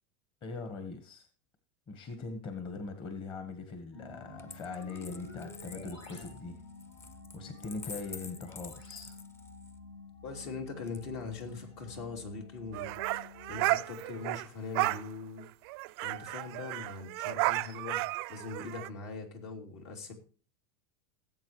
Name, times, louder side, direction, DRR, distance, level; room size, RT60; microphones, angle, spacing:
voice 1, 0.4-1.3 1.9-6.6 7.3-9.2, left 4 dB, 35° left, 7 dB, 1.4 m, -41 dB
sound 1, 3.9-13.6, left 3 dB, 90° left, 6.9 m, -50 dB
Coin (dropping), 4.4-9.8 10.9-11.6, left 4 dB, 15° left, 0.5 m, -49 dB
voice 2, 10.2-15.5 16.0-20.1, left 4 dB, 70° left, 3 dB, 2.9 m, -42 dB
sound 2, 12.7-14.5 14.8-15.0 15.4-15.5 15.7-18.9, right 21 dB, 60° right, 0.4 m, -33 dB
18.0 x 7.9 x 3.1 m, 0.39 s
supercardioid pair, 130°, 15 cm